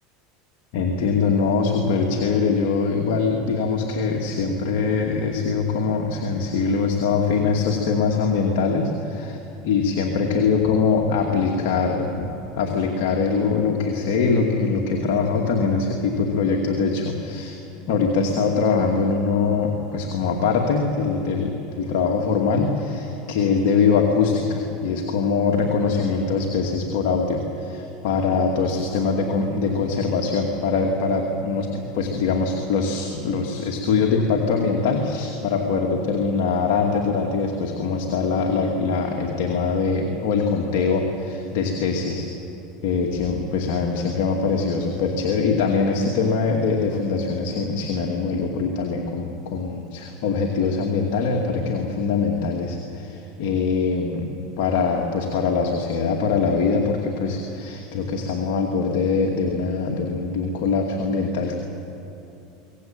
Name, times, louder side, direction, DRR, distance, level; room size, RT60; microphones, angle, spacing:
voice 1, 0.7-9.4 9.6-17.6 17.9-42.3 42.8-61.6, left 5 dB, 65° left, 0 dB, 2.6 m, -23 dB
23.5 x 18.5 x 9.1 m, 2.9 s
supercardioid pair, 105°, 0 cm